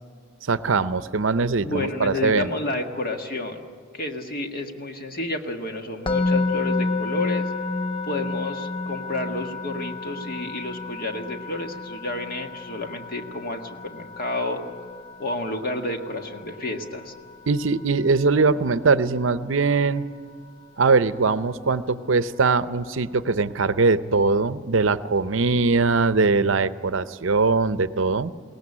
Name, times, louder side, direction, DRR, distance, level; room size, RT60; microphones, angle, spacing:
voice 1, 0.4-2.5 17.5-20.1 20.8-28.3, right 4 dB, 65° right, 13 dB, 0.7 m, -21 dB
voice 2, 1.6-3.6 3.9-7.5 8.0-14.7 15.2-17.1, left 2 dB, 45° left, 4 dB, 1.7 m, -30 dB
Musical instrument, 6.1-17.2, left 3 dB, 25° left, 0.6 m, -30 dB
22.0 x 18.0 x 9.8 m, 2.1 s
head